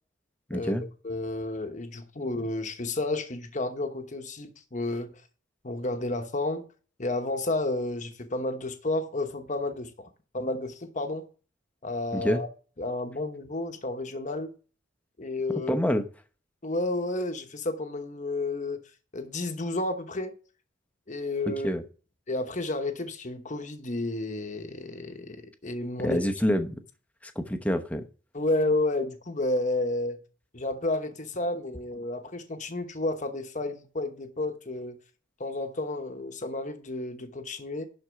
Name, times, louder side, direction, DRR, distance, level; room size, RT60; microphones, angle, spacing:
voice 1, 0.5-0.8 12.1-12.4 15.7-16.0 21.5-21.8 26.0-26.7 27.4-28.0, equal, 5° left, 0.8 m, -26 dB
voice 2, 1.0-5.1 5.6-6.6 7.0-10.1 10.3-11.3 11.8-12.5 12.8-14.5 15.2-15.7 16.6-18.8 19.1-20.4 21.1-21.7 22.3-26.2 28.3-30.2 30.5-35.0 35.4-37.9, left 2 dB, 35° left, 1.0 m, -31 dB
11.5 x 4.3 x 5.7 m
head